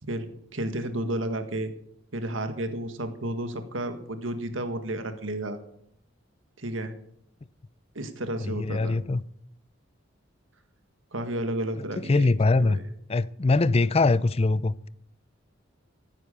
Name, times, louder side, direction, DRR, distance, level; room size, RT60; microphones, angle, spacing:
voice 1, 0.1-1.7 2.1-5.6 6.6-6.9 8.0-9.0 11.1-12.8, right 1 dB, 80° right, 1.7 m, -32 dB
voice 2, 8.4-9.2 11.8-12.8 13.1-14.9, left 3 dB, 30° left, 0.5 m, -23 dB
15.5 x 9.3 x 6.7 m
head